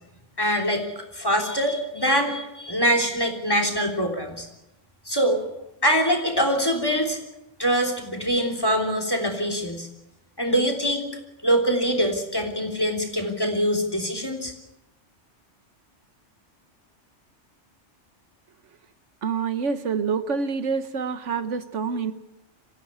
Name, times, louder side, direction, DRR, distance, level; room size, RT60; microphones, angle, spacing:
voice 1, 0.4-4.5 5.0-5.4 5.8-7.2 7.6-9.9 10.4-11.1 11.4-14.5, equal, 20° left, 4 dB, 3.3 m, -24 dB
voice 2, 19.2-22.1, right 5 dB, 75° right, 11 dB, 1.4 m, -27 dB
25.0 x 15.5 x 8.6 m, 0.93 s
omnidirectional pair, 1.3 m